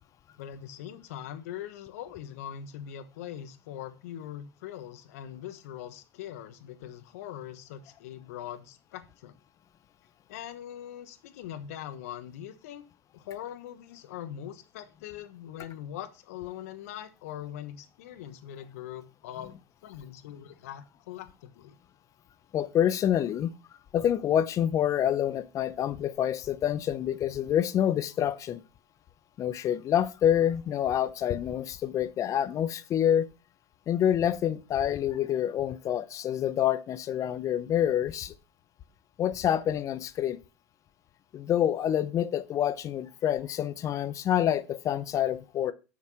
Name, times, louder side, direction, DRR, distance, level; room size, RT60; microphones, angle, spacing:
voice 1, 0.4-9.3 10.3-12.8 13.1-21.7, left 10 dB, 75° left, 1.2 m, -42 dB
voice 2, 22.5-23.5 23.9-28.6 29.4-33.3 33.9-38.3 39.2-40.4 41.3-45.7, left 10 dB, 45° left, 0.7 m, -27 dB
7.4 x 6.0 x 5.6 m
hypercardioid pair, 90°, 8 cm